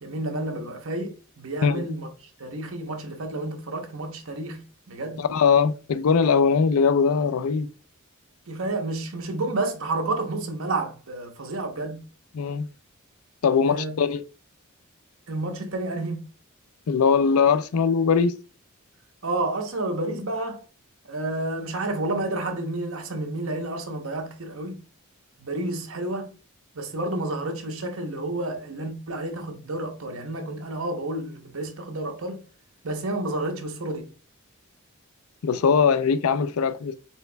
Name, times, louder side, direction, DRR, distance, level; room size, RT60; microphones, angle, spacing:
voice 1, 0.0-4.6 4.9-5.2 8.5-12.0 13.7-14.0 15.3-16.2 19.2-20.6 21.1-24.8 25.4-26.3 26.7-32.4 32.8-34.1, right 2 dB, 65° right, 1.0 m, -30 dB
voice 2, 5.2-7.7 12.3-12.7 13.4-14.2 16.9-18.4 35.4-36.9, left 6 dB, 75° left, 0.4 m, -21 dB
4.4 x 4.2 x 2.2 m
head